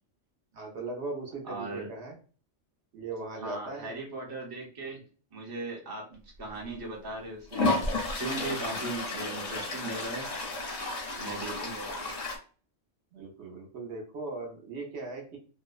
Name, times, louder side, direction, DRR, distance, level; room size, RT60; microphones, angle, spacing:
voice 1, 0.5-2.2 2.9-3.9 13.1-15.4, right 3 dB, 65° right, -1 dB, 1.0 m, -38 dB
voice 2, 1.4-1.9 3.4-5.0 5.3-7.8 8.1-10.3 11.2-11.9, right 3 dB, 25° right, -1 dB, 0.5 m, -38 dB
Toilet flush, 6.5-6.6 7.5-12.4, left 2 dB, 50° left, 0.5 m, -32 dB
2.7 x 2.0 x 2.3 m, 0.38 s
omnidirectional pair, 1.2 m